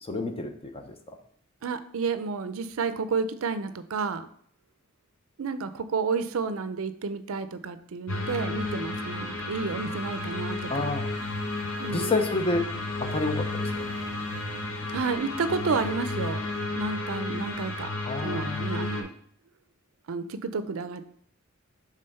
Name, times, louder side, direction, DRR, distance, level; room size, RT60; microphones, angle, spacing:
voice 1, 0.0-1.2 10.7-11.1 11.9-12.6 13.0-13.7 18.0-18.7, left 3 dB, 25° left, 6 dB, 0.7 m, -29 dB
voice 2, 1.6-4.3 5.4-10.9 11.8-12.2 14.9-16.4 16.7-17.9 18.2-19.1 20.1-21.0, right 4 dB, 75° right, 12 dB, 0.5 m, -31 dB
sound 1, 8.1-19.0, left 2 dB, 85° left, 1.1 m, -32 dB
5.5 x 3.6 x 5.3 m, 0.63 s
head